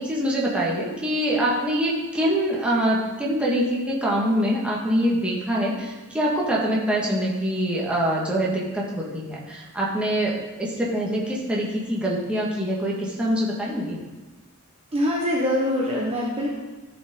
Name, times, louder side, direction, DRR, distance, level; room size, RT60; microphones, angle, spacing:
voice 1, 0.0-10.3 10.6-14.0, equal, 5° right, -5 dB, 1.7 m, -24 dB
voice 2, 14.9-16.5, left 1 dB, 25° right, -4 dB, 1.1 m, -24 dB
13.0 x 5.3 x 3.8 m, 1.2 s
head